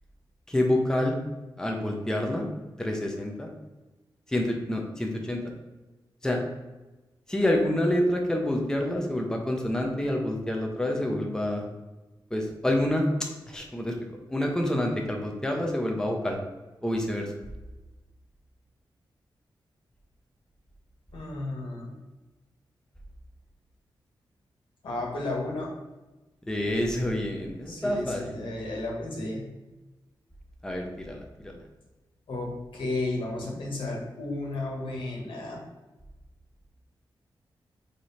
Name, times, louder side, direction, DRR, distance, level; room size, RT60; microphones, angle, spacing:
voice 1, 0.5-1.2 1.6-2.5 2.8-3.5 4.3-5.4 6.2-6.4 7.3-11.6 12.3-13.1 13.5-13.9 14.3-16.4 16.8-17.3 26.5-28.4 30.6-31.5, left 1 dB, 10° left, 1 dB, 0.9 m, -27 dB
voice 2, 21.1-22.0 24.8-25.7 27.7-29.4 32.3-35.6, left 2 dB, 90° left, -3 dB, 1.9 m, -33 dB
5.0 x 4.5 x 4.2 m, 1.1 s
wide cardioid pair, 120°, 8 cm